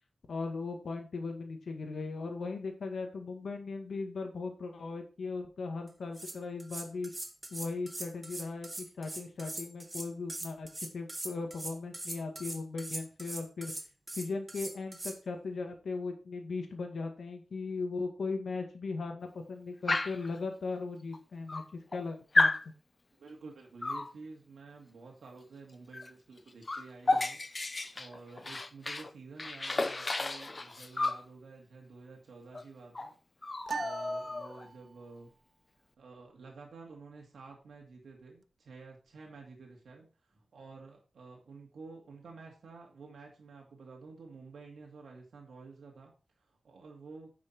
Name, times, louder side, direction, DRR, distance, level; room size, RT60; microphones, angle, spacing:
voice 1, 0.3-7.1 7.5-10.7 10.9-13.7 14.2-21.6 21.9-22.5, left 3 dB, 70° left, 4 dB, 1.9 m, -38 dB
sound 1, 5.9-15.2, right 1 dB, 15° right, 1.3 m, -41 dB
Dog, 19.9-20.3 21.1-21.2 21.5-22.0 22.3-22.7 23.8-24.1 25.9-26.1 26.4-29.1 29.4-31.2 32.5-32.6 32.9-33.1 33.4-34.7, left 2 dB, 25° left, 0.7 m, -32 dB
voice 2, 23.1-33.1 33.7-35.3 36.0-47.3, right 4 dB, 85° right, 0 dB, 2.2 m, -51 dB
sound 2, 33.7-35.1, right 5 dB, 50° right, 0.4 m, -41 dB
10.0 x 6.2 x 4.6 m, 0.34 s
wide cardioid pair, 160°, 0 cm